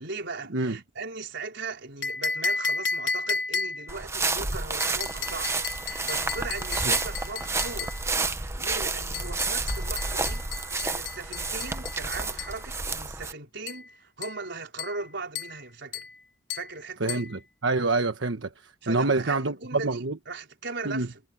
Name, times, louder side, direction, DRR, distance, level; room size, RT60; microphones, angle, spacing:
voice 1, 0.0-8.0 8.3-10.5 10.8-16.1 16.5-17.3 18.8-21.2, right 3 dB, 65° right, 5.1 m, -38 dB
sound 1, 2.0-4.0 4.8-8.0 9.1-12.6 13.7-13.9 14.2-14.5 14.8-15.1 15.4-15.6 15.9-16.2 16.5-16.8 17.1-17.3, left 4 dB, 70° left, 3.9 m, -33 dB
sound 2, 3.9-13.3, right 3 dB, 15° right, 1.1 m, -30 dB
voice 2, 17.0-18.5 18.9-20.1 20.8-21.1, right 3 dB, 80° right, 1.3 m, -26 dB
head